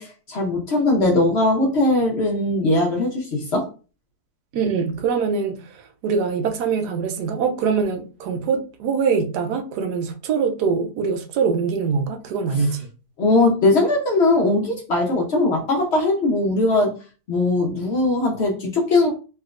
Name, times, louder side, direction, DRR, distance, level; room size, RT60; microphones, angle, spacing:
voice 1, 0.0-3.7 12.5-12.6 13.2-16.9 17.3-19.1, left 2 dB, 55° left, 0.8 m, -20 dB
voice 2, 4.5-12.9, right 5 dB, 90° right, 1.2 m, -23 dB
3.3 x 2.9 x 2.4 m
omnidirectional pair, 1.7 m